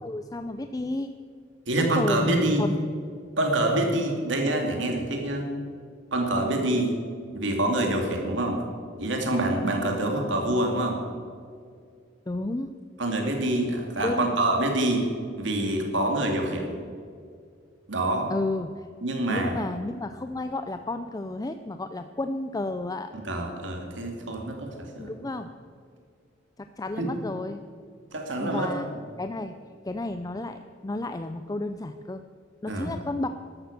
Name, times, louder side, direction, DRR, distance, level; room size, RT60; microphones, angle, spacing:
voice 1, 0.0-1.1 1.8-2.8 12.3-12.7 14.0-14.4 18.3-18.9 19.3-23.1 25.0-25.5 26.6-27.6 28.4-28.9 29.2-29.6 29.9-32.2 32.6-33.3, left 2 dB, 20° left, 8 dB, 0.5 m, -32 dB
voice 2, 1.7-2.6 3.4-5.5 6.1-6.9 7.3-8.6 9.0-11.0 13.0-15.0 15.4-16.8 17.9-18.3 19.0-19.6 23.2-25.1 27.0-27.1 28.1-28.7 32.7-32.9, right 1 dB, 65° right, 2 dB, 2.7 m, -26 dB
13.0 x 12.5 x 6.8 m, 2.2 s
head